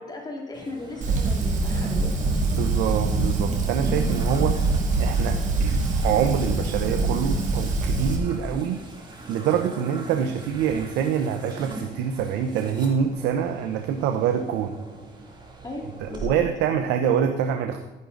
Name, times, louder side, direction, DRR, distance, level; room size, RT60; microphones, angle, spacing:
voice 1, 0.0-2.1 15.6-16.4, left 2 dB, 25° left, 1 dB, 2.4 m, -36 dB
sound 1, 0.5-16.3, right 2 dB, 25° right, 2.8 m, -41 dB
Fire, 1.0-8.2, right 3 dB, 45° right, 2.5 m, -24 dB
voice 2, 2.5-8.8 9.3-14.7 16.0-17.8, right 8 dB, 90° right, 6 dB, 0.9 m, -25 dB
12.5 x 11.0 x 3.9 m, 1.1 s
cardioid pair, 110°, 17 cm